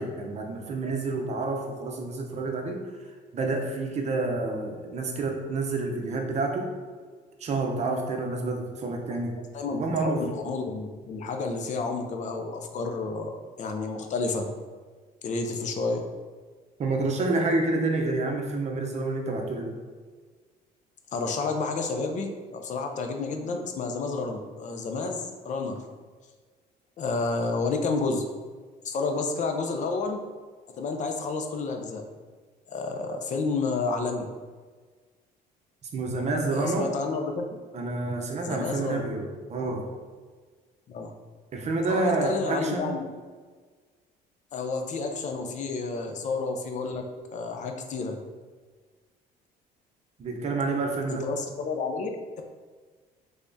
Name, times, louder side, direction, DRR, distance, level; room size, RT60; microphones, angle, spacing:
voice 1, 0.0-2.8 3.3-6.7 7.4-9.3 9.7-10.2 16.8-19.7 35.9-36.9 37.7-39.8 41.5-42.9 50.2-51.3, right 3 dB, 40° right, 2 dB, 0.7 m, -28 dB
voice 2, 9.5-14.5 15.2-16.1 21.1-25.8 27.0-28.2 28.8-30.2 30.7-32.0 32.7-34.3 36.5-37.5 38.4-39.0 40.9-41.1 41.9-43.1 44.5-48.2 51.1-52.1, left 3 dB, 45° left, 4 dB, 0.5 m, -30 dB
3.4 x 3.4 x 2.6 m, 1.5 s
cardioid pair, 110°, 17 cm